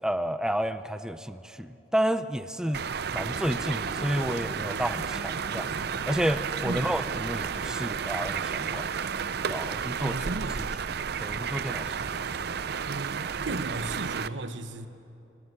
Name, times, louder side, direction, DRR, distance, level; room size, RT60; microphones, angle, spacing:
voice 1, 0.0-2.8 3.1-9.2 9.5-10.3 11.2-12.0, equal, 5° right, 11 dB, 0.5 m, -31 dB
sound 1, 2.7-14.3, right 6 dB, 60° right, 0.6 m, -32 dB
sound 2, 3.1-9.3, left 1 dB, 15° left, 3.1 m, -48 dB
voice 2, 10.0-10.7 12.9-14.9, right 2 dB, 85° right, 10 dB, 1.2 m, -35 dB
25.5 x 14.5 x 9.7 m, 2.7 s
head